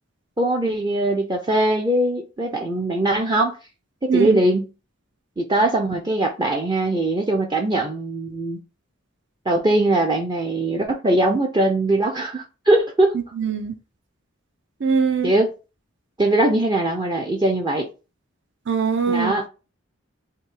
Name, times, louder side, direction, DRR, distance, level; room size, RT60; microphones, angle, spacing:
voice 1, 0.4-3.6 4.0-4.7 5.4-8.6 9.5-13.1 15.2-15.5 16.2-17.9 19.1-19.5, right 1 dB, 20° right, 0.5 m, -21 dB
voice 2, 4.1-4.4 13.1-13.7 14.8-15.3 18.7-19.3, right 6 dB, 60° right, 0.7 m, -22 dB
3.6 x 2.7 x 4.6 m
head